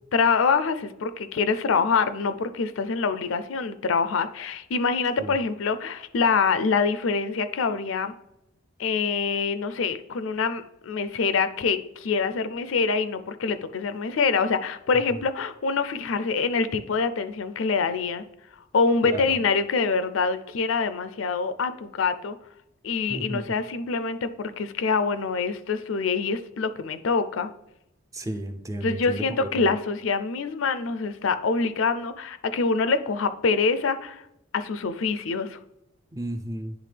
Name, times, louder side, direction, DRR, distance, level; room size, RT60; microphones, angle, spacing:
voice 1, 0.1-8.1 8.8-18.2 18.7-22.3 22.8-27.5 28.8-34.2 34.5-35.6, left 4 dB, 75° left, 12 dB, 0.5 m, -25 dB
voice 2, 23.1-23.4 28.1-29.7 36.1-36.7, right 1 dB, 15° right, 7 dB, 0.4 m, -33 dB
10.0 x 3.5 x 3.3 m, 0.84 s
head